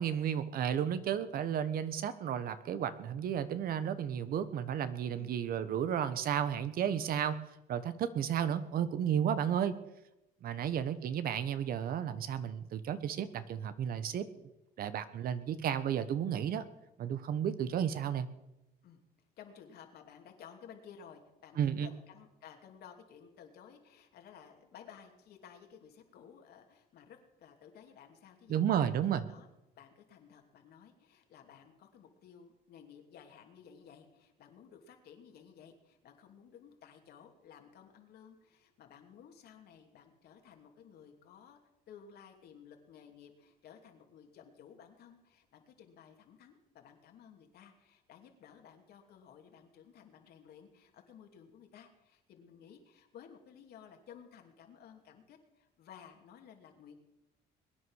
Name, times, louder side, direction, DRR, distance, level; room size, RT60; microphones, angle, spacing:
voice 1, 0.0-7.3 7.7-9.7 10.4-14.2 14.8-16.6 17.0-18.3 21.6-21.9 28.5-29.2, right 9 dB, 60° right, 13 dB, 1.2 m, -33 dB
voice 2, 5.2-5.7 10.5-10.8 18.8-19.0 19.4-28.7 29.0-29.5 29.8-41.6 41.9-57.0, left 8 dB, 70° left, 4 dB, 2.7 m, -56 dB
21.5 x 9.7 x 6.4 m, 0.93 s
cardioid pair, 110°, 17 cm